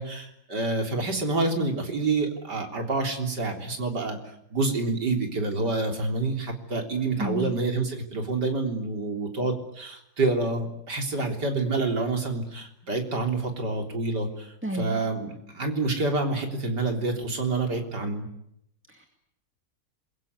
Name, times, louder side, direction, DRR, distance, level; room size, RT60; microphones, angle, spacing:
voice 1, 0.0-18.3, right 3 dB, 65° right, 4 dB, 4.2 m, -28 dB
voice 2, 7.2-7.6 14.6-15.0 18.9-19.1, right 1 dB, 5° right, 4 dB, 2.2 m, -32 dB
27.0 x 22.5 x 9.7 m, 0.77 s
omnidirectional pair, 1.9 m